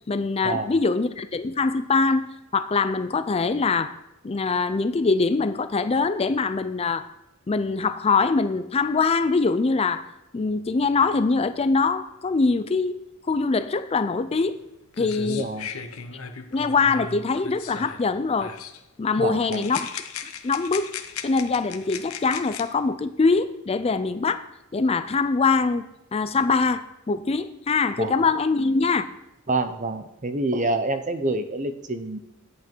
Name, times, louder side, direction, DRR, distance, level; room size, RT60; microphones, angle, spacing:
voice 1, 0.1-3.9 4.2-7.1 7.5-10.1 10.3-13.0 13.3-14.6 15.0-15.5 16.5-18.5 19.0-19.9 20.2-20.9 21.2-24.4 24.7-25.8 26.1-29.1, left 4 dB, 30° left, 12 dB, 0.4 m, -23 dB
sound 1, 14.6-14.7 14.9-18.1 18.4-18.8 19.5-22.6, left 7 dB, 90° left, 0.9 m, -37 dB
voice 2, 15.2-15.7 19.2-19.7 28.0-28.2 29.5-32.2, right 2 dB, 35° right, 9 dB, 0.8 m, -27 dB
11.0 x 8.2 x 4.5 m, 0.93 s
head